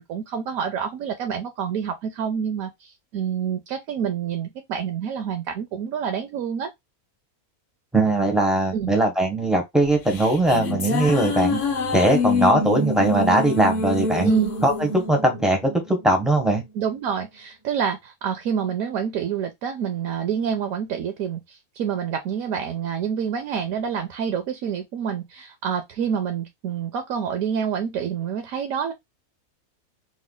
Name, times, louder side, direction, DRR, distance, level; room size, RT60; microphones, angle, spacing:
voice 1, 0.0-6.7 8.7-9.0 14.2-14.5 16.7-28.9, right 7 dB, 75° right, 1.0 m, -27 dB
voice 2, 7.9-11.6 11.9-14.3 14.6-16.6, right 1 dB, ahead, 0.4 m, -20 dB
sound 1, 9.8-16.4, left 3 dB, 55° left, 0.5 m, -26 dB
3.1 x 2.2 x 3.6 m
omnidirectional pair, 1.5 m